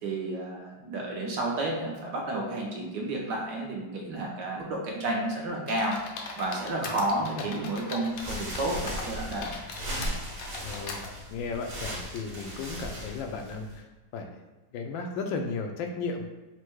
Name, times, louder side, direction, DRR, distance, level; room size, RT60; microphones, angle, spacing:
voice 1, 0.0-6.0 6.4-9.5, right 2 dB, 70° right, -1 dB, 1.4 m, -31 dB
sound 1, 5.7-8.6 8.9-11.1, left 3 dB, 65° left, 0.9 m, -40 dB
voice 2, 6.8-7.5 10.6-13.9 14.1-14.4 14.7-16.2, left 4 dB, 85° left, 4 dB, 1.3 m, -35 dB
sound 2, 8.1-13.8, equal, 45° right, 0.7 m, -37 dB
4.4 x 2.1 x 4.5 m, 1.1 s
omnidirectional pair, 2.1 m